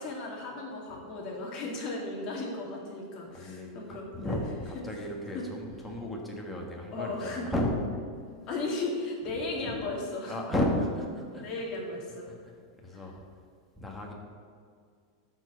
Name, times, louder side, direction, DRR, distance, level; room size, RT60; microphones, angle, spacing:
voice 1, 0.0-4.4 5.3-5.5 6.9-7.5 8.5-10.4 11.4-12.3 12.9-13.1, left 2 dB, 35° left, -1 dB, 1.9 m, -35 dB
voice 2, 3.3-7.8 10.3-11.5 12.3-12.4 12.8-13.2 13.8-14.1, left 1 dB, 5° left, -1 dB, 1.5 m, -33 dB
11.5 x 4.7 x 6.6 m, 2.1 s
supercardioid pair, 155°, 2 cm